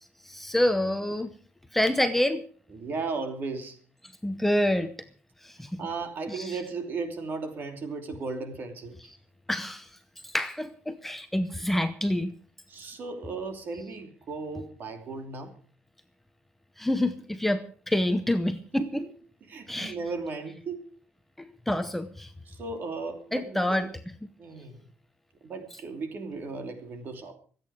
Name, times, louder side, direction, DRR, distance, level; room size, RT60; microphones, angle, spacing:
voice 1, 0.2-1.3 1.7-2.4 4.2-5.1 5.4-5.8 6.3-6.6 9.5-10.0 10.2-12.3 16.8-19.0 19.7-19.9 21.4-22.3 23.3-23.9, left 1 dB, 5° left, 8 dB, 0.8 m, -27 dB
voice 2, 2.7-3.8 5.8-9.1 12.7-15.5 19.0-19.1 19.5-20.9 22.5-23.9 24.4-24.8 25.4-27.3, right 4 dB, 45° right, 6 dB, 2.9 m, -36 dB
25.0 x 8.9 x 4.9 m, 0.43 s
cardioid pair, 160°, 4 cm